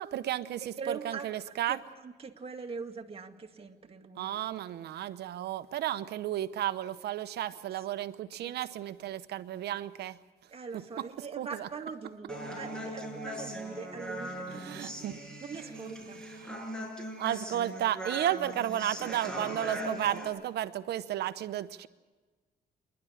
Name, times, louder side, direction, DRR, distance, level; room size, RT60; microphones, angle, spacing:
voice 1, 0.0-1.8 4.2-10.2 11.0-11.1 11.4-11.7 14.6-15.2 17.2-21.9, right 12 dB, 80° right, 13 dB, 0.9 m, -33 dB
voice 2, 0.8-4.3 7.8-8.1 8.5-8.6 10.5-14.9 15.4-16.2, right 5 dB, 35° right, 3 dB, 2.2 m, -42 dB
Human voice, 12.3-20.3, equal, 5° left, 6.0 m, -40 dB
27.5 x 11.5 x 9.9 m, 1.3 s
cardioid pair, 90°, 17 cm